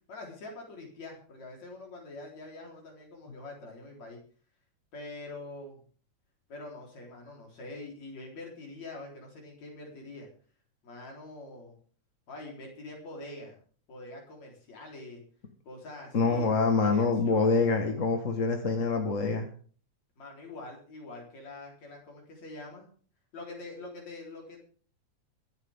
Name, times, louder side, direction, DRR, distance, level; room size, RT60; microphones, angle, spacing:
voice 1, 0.1-4.2 4.9-5.8 6.5-10.3 10.8-11.8 12.3-13.6 13.9-15.2 15.7-17.6 20.2-22.9 23.3-24.6, left 2 dB, 65° left, 0 dB, 5.3 m, -44 dB
voice 2, 16.1-19.5, left 4 dB, 35° left, 4 dB, 1.3 m, -25 dB
23.0 x 10.5 x 3.7 m, 0.43 s
omnidirectional pair, 3.3 m